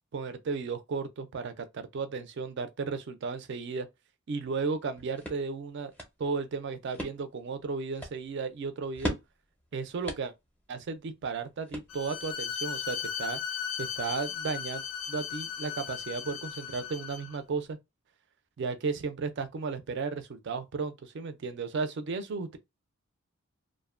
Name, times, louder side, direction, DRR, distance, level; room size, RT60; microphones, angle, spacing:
voice 1, 0.1-3.9 4.3-5.9 6.2-9.2 9.7-10.3 10.7-13.4 13.8-17.8 18.6-22.6, right 4 dB, 55° right, 0.4 m, -34 dB
sound 1, 4.7-12.3, equal, 5° left, 0.5 m, -42 dB
Bowed string instrument, 11.9-17.4, left 8 dB, 75° left, 0.4 m, -37 dB
2.5 x 2.1 x 2.4 m
head